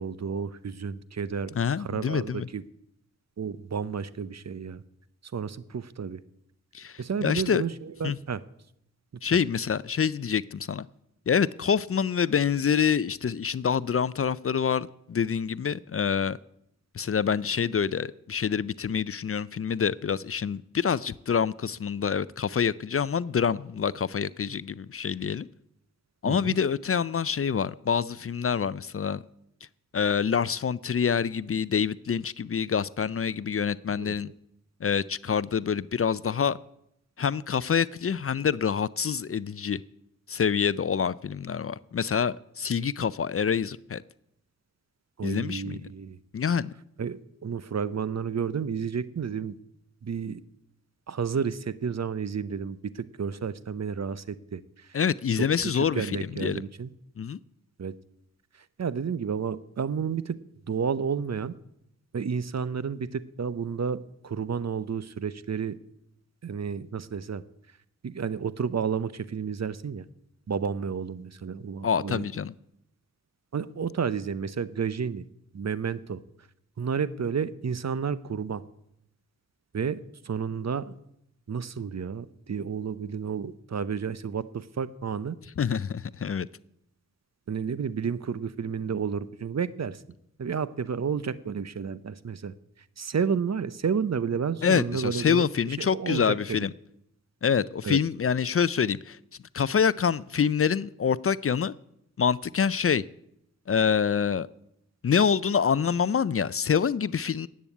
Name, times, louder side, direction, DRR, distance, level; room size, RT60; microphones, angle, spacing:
voice 1, 0.0-2.6 3.4-4.8 5.2-6.2 7.0-8.4 9.3-9.4 26.2-26.6 33.9-34.3 45.2-46.2 47.0-49.6 50.0-50.4 51.1-55.0 55.4-56.9 57.8-57.9 58.8-60.4 60.7-61.5 62.1-65.8 66.4-67.4 68.0-70.1 70.5-72.2 73.5-75.2 75.5-76.2 76.8-78.6 79.7-80.9 81.5-85.4 87.5-90.0 90.4-92.5 93.0-96.6 97.8-98.0, right 6 dB, 50° right, 0.8 m, -31 dB
voice 2, 1.6-2.5 6.7-7.6 8.0-8.2 9.2-10.9 11.3-16.4 16.9-25.5 26.2-29.2 29.9-34.3 34.8-36.6 37.2-39.8 40.3-44.0 45.2-45.8 46.3-46.7 54.9-56.6 57.2-57.4 71.8-72.5 85.6-86.5 94.6-96.7 97.4-99.2 99.5-101.7 102.2-103.0 103.7-104.5 105.0-107.5, left 7 dB, 40° left, 0.5 m, -26 dB
10.5 x 8.7 x 8.4 m
cardioid pair, 40°, 34 cm